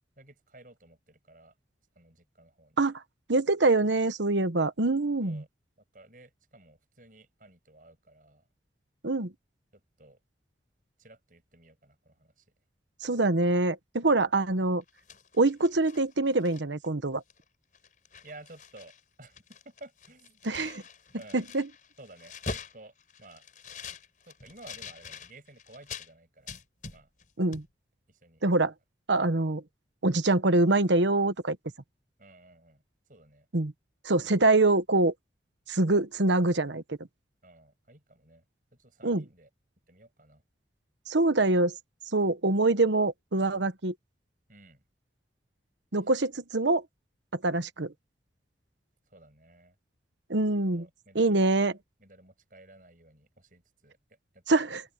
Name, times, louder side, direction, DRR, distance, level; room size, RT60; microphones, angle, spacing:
voice 1, 0.2-1.5 2.0-2.8 5.2-5.5 5.9-8.5 9.7-10.2 11.0-12.5 14.1-14.3 18.2-19.4 19.6-20.7 21.1-21.5 22.0-23.4 24.2-26.5 26.9-27.1 28.1-28.4 32.2-32.8 33.1-33.5 34.2-34.3 37.4-38.5 38.7-39.5 39.9-40.4 44.5-44.8 49.1-49.8 50.7-51.5 52.0-54.4 54.7-54.8, right 2 dB, 45° right, 7.2 m, -54 dB
voice 2, 3.3-5.4 9.0-9.3 13.0-14.8 15.4-17.2 20.4-20.8 21.3-21.7 27.4-27.6 28.4-28.7 29.1-29.6 30.0-31.6 33.5-33.7 34.0-35.1 35.7-37.0 39.0-39.2 41.1-41.7 42.1-43.9 45.9-46.8 47.3-47.9 50.3-50.9 51.1-51.7 54.5-54.8, right 2 dB, 80° right, 1.2 m, -25 dB
sound 1, 14.8-16.9 17.3-17.4 17.7-19.0 19.3-26.1 26.5-27.3 27.5-27.7, left 4 dB, 45° left, 5.8 m, -44 dB
open air
head